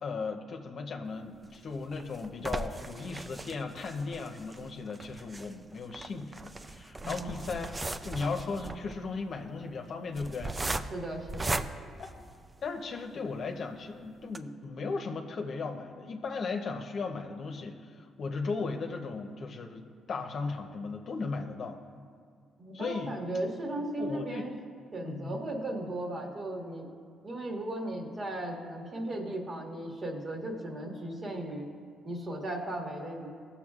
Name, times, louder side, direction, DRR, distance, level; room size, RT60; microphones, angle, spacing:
voice 1, 0.0-7.8 8.0-10.6 12.0-12.1 12.6-21.8 22.7-23.2 24.0-24.5 25.0-25.4, left 4 dB, 55° left, 4 dB, 0.8 m, -36 dB
sound 1, 1.4-12.8 13.4-13.5 13.7-13.8 14.2-14.4, right 2 dB, 20° right, 0.4 m, -38 dB
voice 2, 7.0-7.6 10.9-11.6 22.6-24.5 24.9-26.9 27.2-31.7 32.0-33.3, right 1 dB, 40° right, 0 dB, 1.6 m, -36 dB
18.5 x 7.0 x 2.4 m, 2.1 s
cardioid pair, 90°, 0 cm